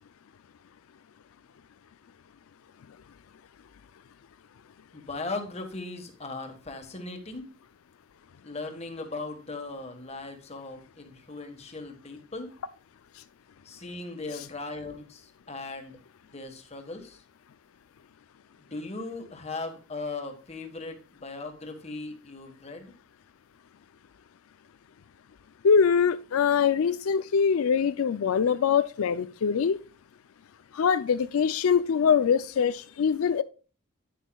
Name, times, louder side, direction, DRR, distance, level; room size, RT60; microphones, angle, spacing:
voice 1, 4.9-7.5 8.4-12.5 13.6-17.2 18.6-22.9, left 3 dB, 30° left, 1.4 m, -38 dB
voice 2, 25.6-29.8 30.7-33.4, left 6 dB, 80° left, 0.4 m, -23 dB
10.0 x 9.2 x 2.3 m
head